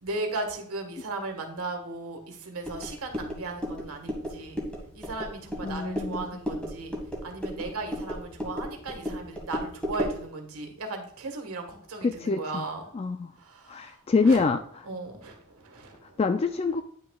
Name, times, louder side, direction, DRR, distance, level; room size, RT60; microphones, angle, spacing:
voice 1, 0.0-4.6 4.9-6.9 7.2-12.8 13.4-14.5 14.9-16.2, right 2 dB, 70° right, 3 dB, 1.6 m, -36 dB
sound 1, 2.6-10.2, equal, 5° left, 1.7 m, -35 dB
voice 2, 5.6-6.4 12.0-12.6 12.9-13.3 13.7-14.8 16.0-16.8, left 4 dB, 25° left, 8 dB, 0.3 m, -26 dB
9.7 x 6.3 x 2.3 m, 0.65 s
head